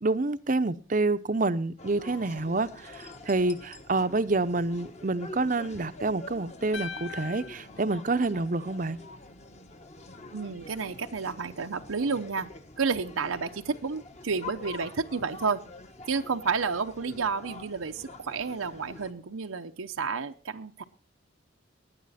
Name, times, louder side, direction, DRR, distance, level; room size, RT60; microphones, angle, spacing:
voice 1, 0.0-9.0, right 3 dB, 40° right, 0.7 m, -28 dB
sound 1, 1.8-19.1, left 2 dB, 35° left, 1.3 m, -46 dB
sound 2, 6.7-9.0, left 5 dB, 65° left, 1.0 m, -42 dB
voice 2, 10.3-12.5 12.8-15.6 16.1-20.8, right 5 dB, 90° right, 0.8 m, -31 dB
19.0 x 10.0 x 4.2 m
head